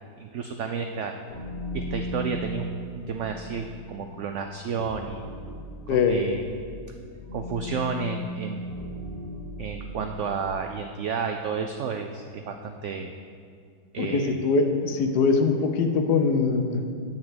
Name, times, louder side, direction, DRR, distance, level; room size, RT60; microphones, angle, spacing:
voice 1, 0.2-1.1 1.7-5.2 5.9-6.4 7.3-8.8 9.6-13.1 13.9-14.3, right 6 dB, 80° right, 5 dB, 0.6 m, -31 dB
sound 1, 1.3-10.5, left 1 dB, 35° left, 1.6 m, -37 dB
voice 2, 5.9-6.2 14.0-16.9, left 4 dB, 75° left, 6 dB, 1.4 m, -22 dB
9.5 x 4.4 x 7.6 m, 2.3 s
omnidirectional pair, 1.8 m